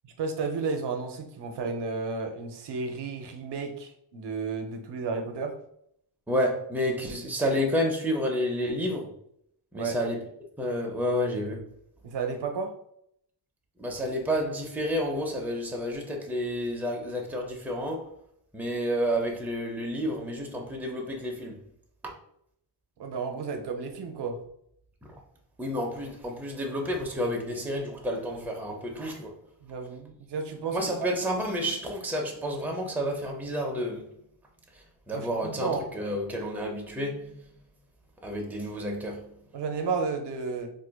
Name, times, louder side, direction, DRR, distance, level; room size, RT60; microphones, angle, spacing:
voice 1, 0.0-5.6 9.7-10.0 12.0-12.8 23.0-24.4 29.6-30.8 35.1-35.9 39.5-40.7, right 4 dB, 75° right, 0.6 m, -32 dB
voice 2, 6.3-9.1 9.7-10.2 10.6-11.6 13.8-18.1 18.5-21.6 22.0-22.2 25.0-25.1 25.6-29.4 30.7-34.2 34.7-37.5 38.2-39.3, equal, 5° right, 0.5 m, -30 dB
4.2 x 2.6 x 2.2 m
wide cardioid pair, 120°, 42 cm